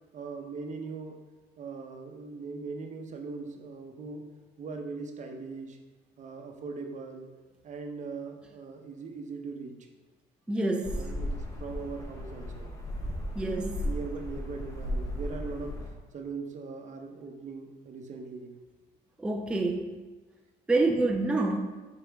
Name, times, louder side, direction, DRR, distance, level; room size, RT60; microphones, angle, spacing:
voice 1, 0.1-1.2 1.6-4.2 4.6-5.8 6.2-7.3 7.6-9.9 10.9-12.7 13.8-15.8 16.1-18.5 20.9-21.0, right 4 dB, 45° right, 4 dB, 0.8 m, -40 dB
voice 2, 10.5-11.1 13.4-13.9 19.2-20.0 20.7-21.7, right 2 dB, 5° right, 2 dB, 0.5 m, -27 dB
sound 1, 10.8-15.9, equal, 20° left, 1.1 m, -35 dB
5.6 x 5.1 x 3.4 m, 1.3 s
cardioid pair, 110°, 17 cm